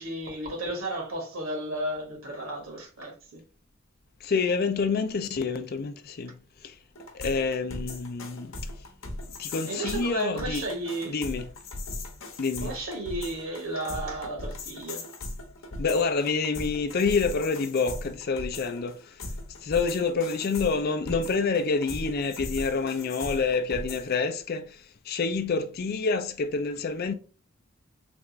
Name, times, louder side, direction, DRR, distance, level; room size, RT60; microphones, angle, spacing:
voice 1, 0.0-3.4 9.6-11.1 12.6-15.0, right 1 dB, 90° right, 1.5 m, -33 dB
voice 2, 4.2-6.3 6.6-6.7 7.1-8.5 9.4-10.6 11.1-11.5 12.4-12.7 15.8-19.0 19.6-24.8 25.1-27.1, left 4 dB, 50° left, 0.4 m, -27 dB
sound 1, 6.9-24.2, left 2 dB, 75° left, 0.8 m, -39 dB
3.4 x 2.5 x 3.0 m
head